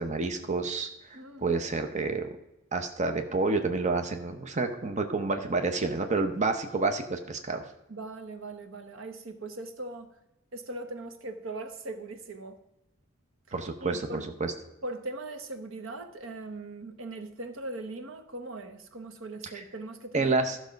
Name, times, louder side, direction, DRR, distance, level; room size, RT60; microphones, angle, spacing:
voice 1, 0.0-2.2 2.7-7.7 13.5-14.5 19.5-19.6 20.1-20.6, right 3 dB, 35° right, 0.8 m, -29 dB
voice 2, 1.1-1.6 7.9-10.1 10.5-12.6 13.8-14.3 14.8-20.3, right 2 dB, 75° right, 1.0 m, -40 dB
13.0 x 6.3 x 5.2 m
head